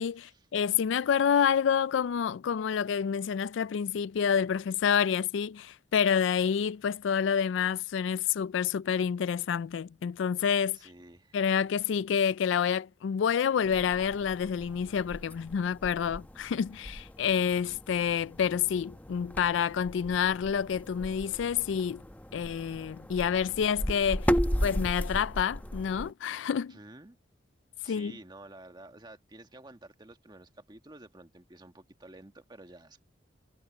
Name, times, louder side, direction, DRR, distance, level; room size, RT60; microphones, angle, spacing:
voice 1, 0.0-10.8 11.3-22.0 22.3-24.3 24.6-26.8 27.9-28.2, left 7 dB, 85° left, 0.4 m, -28 dB
voice 2, 10.7-11.4 24.5-24.6 26.7-27.2 27.8-33.0, right 2 dB, 25° right, 1.6 m, -51 dB
sound 1, 13.6-26.1, equal, 10° left, 0.9 m, -36 dB
head